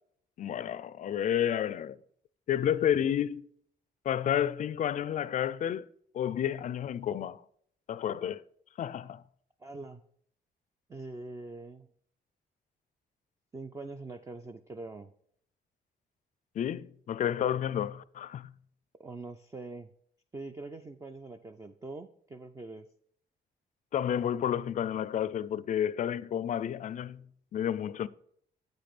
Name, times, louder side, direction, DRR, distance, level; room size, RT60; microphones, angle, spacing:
voice 1, 0.4-2.0 2.5-3.5 4.1-5.9 6.1-7.4 7.9-8.4 8.8-9.2 16.6-18.5 23.9-27.2 27.5-28.1, left 9 dB, 50° left, 0.4 m, -30 dB
voice 2, 9.6-10.0 10.9-11.9 13.5-15.1 17.4-17.5 19.0-19.9 20.3-22.9, right 3 dB, 20° right, 0.4 m, -43 dB
8.6 x 5.2 x 5.9 m
cardioid pair, 130°, 17 cm